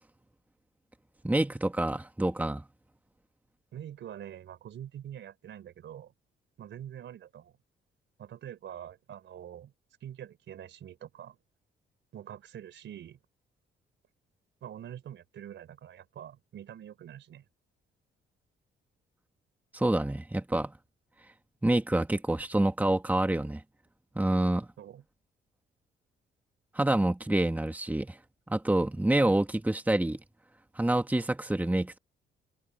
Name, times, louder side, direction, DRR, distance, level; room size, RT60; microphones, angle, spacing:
voice 1, 1.2-2.6 19.7-20.7 21.6-23.6 24.1-24.7 26.7-28.2 28.5-30.2 30.7-32.0, right 1 dB, 10° right, 1.7 m, -27 dB
voice 2, 3.7-6.1 6.6-7.6 8.2-9.7 10.0-11.4 12.1-13.2 14.6-17.4 24.8-25.0, right 10 dB, 70° right, 3.8 m, -45 dB
cardioid pair, 90°, 20 cm